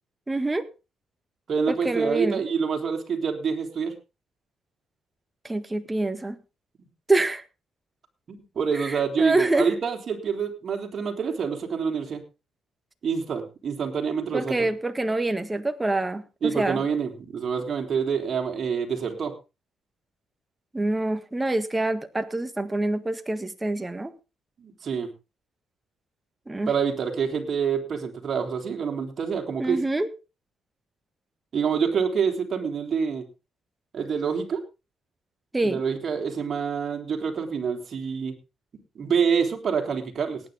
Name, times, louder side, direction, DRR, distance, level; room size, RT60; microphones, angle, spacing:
voice 1, 0.3-0.6 1.7-2.4 5.4-6.4 7.1-7.4 8.7-9.7 14.3-16.8 20.7-24.1 26.5-26.7 29.6-30.1 35.5-35.8, right 2 dB, 15° right, 9 dB, 1.7 m, -26 dB
voice 2, 1.5-3.9 6.8-6.9 8.3-12.2 13.0-14.7 16.4-19.3 24.6-25.1 26.7-29.8 31.5-33.2 33.9-34.6 35.6-38.3 39.0-40.4, right 6 dB, 50° right, 4 dB, 3.6 m, -27 dB
18.0 x 9.8 x 3.7 m, 0.29 s
cardioid pair, 90°, 0 cm